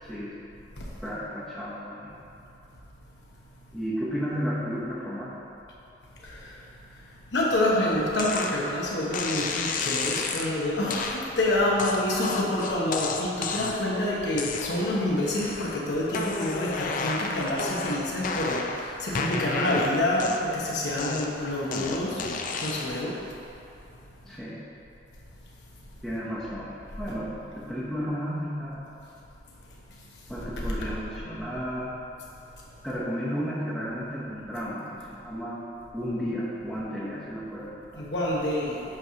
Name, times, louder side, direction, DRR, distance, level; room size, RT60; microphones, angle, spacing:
voice 1, 0.0-0.3 1.0-2.2 3.7-5.3 24.2-24.6 26.0-28.9 30.3-31.9 32.8-35.6 35.9-38.1, equal, ahead, -11 dB, 0.9 m, -33 dB
voice 2, 6.2-6.6 7.3-22.2 22.6-23.1 38.0-38.8, left 1 dB, 90° left, -4 dB, 1.0 m, -27 dB
sound 1, 8.2-8.5 9.1-10.5 10.9-11.2 11.8-13.9 14.3-15.0 15.3-15.8 16.1-18.8 19.1-20.6 21.0-23.0, left 4 dB, 50° left, 0.5 m, -31 dB
7.9 x 3.1 x 5.6 m, 2.9 s
head